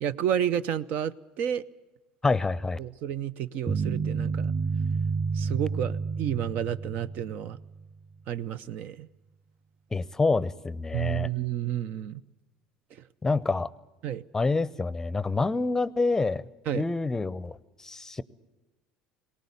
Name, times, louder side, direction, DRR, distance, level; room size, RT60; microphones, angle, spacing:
voice 1, 0.0-1.6 2.8-4.5 5.3-7.6 8.3-9.1 10.9-12.2 14.0-14.2 16.7-16.8, right 10 dB, 60° right, 14 dB, 0.6 m, -30 dB
voice 2, 2.2-2.8 9.9-11.3 13.2-13.7 14.3-16.4 16.7-18.2, left 3 dB, 15° left, 19 dB, 0.6 m, -27 dB
sound 1, 3.7-7.9, right 5 dB, 25° right, 0.6 m, -30 dB
18.5 x 18.5 x 8.3 m, 1.1 s
supercardioid pair, 85°, 3 cm